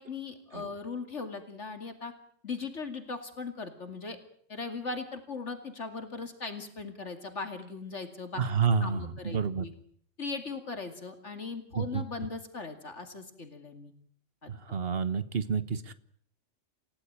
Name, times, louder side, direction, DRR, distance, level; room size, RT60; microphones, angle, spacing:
voice 1, 0.0-2.1 2.4-4.2 4.5-8.4 8.8-9.7 10.2-13.9 14.4-14.5, left 4 dB, 65° left, 7 dB, 2.8 m, -39 dB
voice 2, 8.4-9.7 11.7-12.0 14.5-15.9, right 6 dB, 50° right, 14 dB, 1.4 m, -29 dB
29.0 x 16.0 x 8.8 m, 0.63 s
omnidirectional pair, 1.3 m